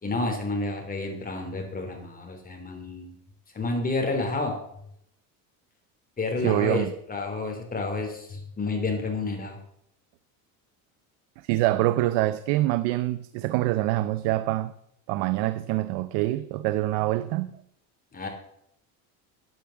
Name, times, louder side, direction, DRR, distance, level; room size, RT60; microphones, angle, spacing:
voice 1, 0.0-3.1 3.5-4.5 6.2-9.6 18.1-18.3, left 3 dB, 20° left, 3.8 m, -30 dB
voice 2, 6.4-6.9 11.4-14.7 15.1-17.6, right 16 dB, 90° right, 0.8 m, -25 dB
10.5 x 9.1 x 7.3 m
cardioid pair, 120°, 41 cm